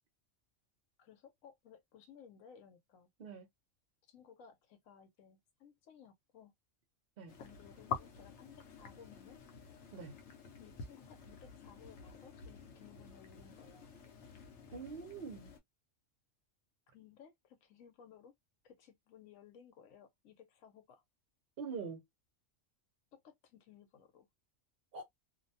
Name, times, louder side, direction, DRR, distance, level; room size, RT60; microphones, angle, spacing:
voice 1, 1.0-3.1 4.1-6.5 7.4-9.4 10.6-13.9 16.9-18.3 18.6-21.0 23.1-24.3, left 7 dB, 90° left, 1.1 m, -59 dB
sound 1, 7.3-15.6, left 6 dB, 65° left, 0.9 m, -48 dB
voice 2, 14.7-15.5 21.6-22.0 24.9-25.0, right 5 dB, 50° right, 0.9 m, -44 dB
2.6 x 2.2 x 2.6 m
omnidirectional pair, 1.3 m